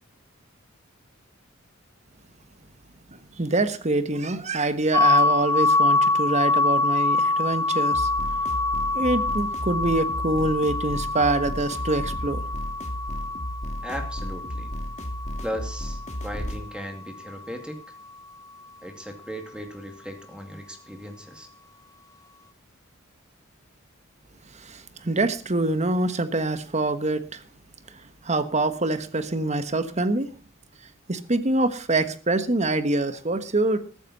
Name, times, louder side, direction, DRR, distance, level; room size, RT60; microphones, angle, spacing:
voice 1, 3.1-8.1 8.9-12.4 24.5-27.4 28.2-30.3 31.1-33.8, right 2 dB, 35° right, 11 dB, 1.3 m, -25 dB
sound 1, 4.9-16.7, left 3 dB, 15° left, 0.6 m, -25 dB
sound 2, 7.9-16.6, equal, 35° left, 2.5 m, -33 dB
voice 2, 13.8-14.7 15.4-17.8 18.8-21.5, equal, 5° right, 5 dB, 2.3 m, -37 dB
14.5 x 13.5 x 4.2 m, 0.37 s
head